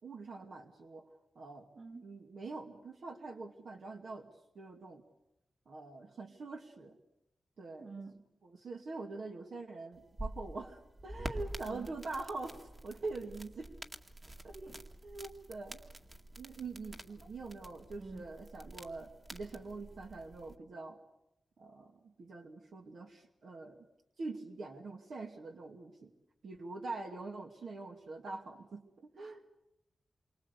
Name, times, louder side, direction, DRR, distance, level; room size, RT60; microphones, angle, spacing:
voice 1, 0.0-1.1 1.4-1.7 2.0-5.0 5.7-7.0 7.6-8.0 8.4-13.7 14.4-14.6 15.0-15.8 16.4-21.0 21.6-23.8 24.2-26.1 26.4-29.4, right 3 dB, 70° right, 3 dB, 2.3 m, -44 dB
voice 2, 1.7-2.1 7.8-8.2 11.6-11.9 14.5-14.8 18.0-18.2 29.2-29.5, right 3 dB, 50° right, 5 dB, 2.6 m, -48 dB
sound 1, 9.9-20.6, right 1 dB, 25° right, 2.1 m, -48 dB
29.0 x 24.5 x 8.3 m, 0.88 s
wide cardioid pair, 140°, 0 cm